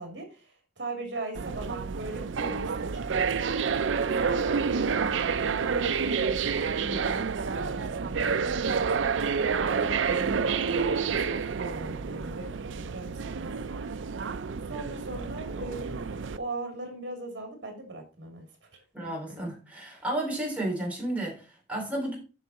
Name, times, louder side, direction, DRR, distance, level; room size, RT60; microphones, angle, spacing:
voice 1, 0.0-3.5 4.2-8.9 9.6-13.6 14.7-18.5, right 2 dB, 65° right, 2.9 m, -39 dB
sound 1, 1.3-16.4, right 5 dB, 85° right, 0.5 m, -29 dB
voice 2, 18.9-22.2, right 1 dB, 10° right, 3.3 m, -32 dB
7.9 x 6.0 x 4.1 m
head